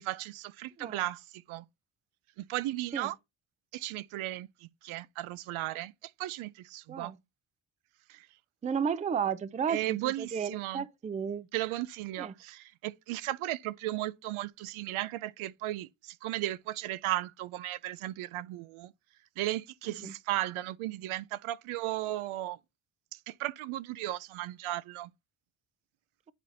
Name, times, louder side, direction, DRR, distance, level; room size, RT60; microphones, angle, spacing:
voice 1, 0.0-1.7 2.4-3.2 3.7-7.1 8.1-8.3 9.7-10.9 11.5-18.9 19.4-22.6 23.1-25.1, right 15 dB, 80° right, 0.6 m, -35 dB
voice 2, 8.6-11.5 12.2-12.3 20.0-20.1, right 7 dB, 15° right, 0.3 m, -33 dB
10.0 x 3.4 x 4.1 m
cardioid pair, 100°, 48 cm